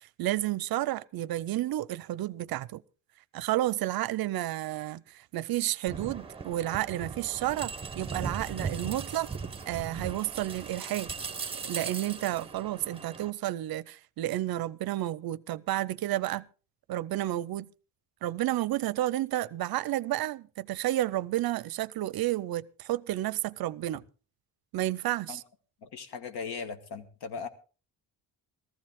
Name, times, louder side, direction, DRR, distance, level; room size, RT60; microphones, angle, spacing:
voice 1, 0.0-2.8 3.3-9.3 9.7-11.1 11.6-16.5 16.9-17.7 18.2-24.0 24.7-25.4, right 15 dB, 65° right, 0.5 m, -31 dB
sound 1, 5.9-13.3, right 5 dB, 15° right, 0.9 m, -38 dB
voice 2, 25.8-27.5, left 5 dB, 75° left, 1.6 m, -38 dB
15.5 x 14.5 x 3.5 m
cardioid pair, 150°, 40 cm